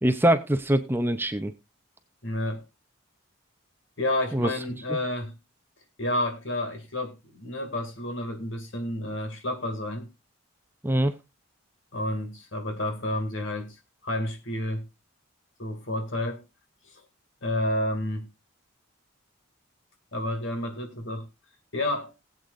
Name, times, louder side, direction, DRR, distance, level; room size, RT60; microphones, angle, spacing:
voice 1, 0.0-1.5 4.3-4.5 4.9-5.0 10.8-11.1, right 1 dB, 10° right, 0.6 m, -23 dB
voice 2, 2.2-2.6 4.0-5.4 6.0-10.1 11.9-13.7 14.0-14.9 15.6-16.4 17.4-18.3 20.1-21.3 21.7-22.1, left 1 dB, 60° left, 2.4 m, -30 dB
19.0 x 8.1 x 2.6 m
head